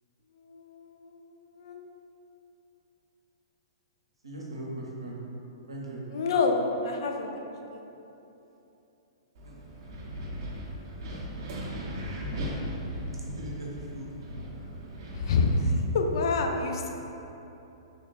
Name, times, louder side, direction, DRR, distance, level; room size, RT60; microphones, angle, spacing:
voice 1, 0.4-1.8 6.1-7.8 15.1-16.9, left 3 dB, 55° left, 2 dB, 0.3 m, -28 dB
voice 2, 4.2-5.2 5.7-6.0 9.4-9.6 13.2-13.7 13.9-14.1, right 1 dB, 85° right, -4 dB, 0.7 m, -39 dB
Wind, 9.3-16.2, equal, 45° right, 0.6 m, -38 dB
3.3 x 2.2 x 3.8 m, 3.0 s
figure-of-eight pair, 110°, 3 cm